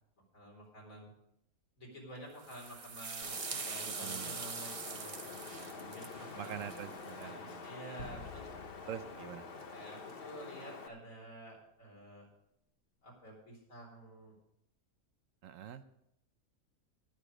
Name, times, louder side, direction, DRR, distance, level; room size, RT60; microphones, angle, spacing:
voice 1, 0.3-1.1 1.8-8.5 9.7-12.3 13.0-14.3, right 1 dB, 65° left, -1 dB, 4.4 m, -50 dB
sound 1, 2.4-7.2, right 5 dB, 40° right, 0.5 m, -43 dB
Wind, 3.2-10.9, left 4 dB, 45° left, 1.1 m, -47 dB
voice 2, 3.8-4.3 6.4-7.7 8.9-9.7 15.4-15.9, right 9 dB, 70° right, 11 dB, 0.9 m, -45 dB
sound 2, 8.0-10.6, left 2 dB, 85° left, 2.5 m, -52 dB
19.0 x 6.7 x 5.0 m, 0.79 s
omnidirectional pair, 1.5 m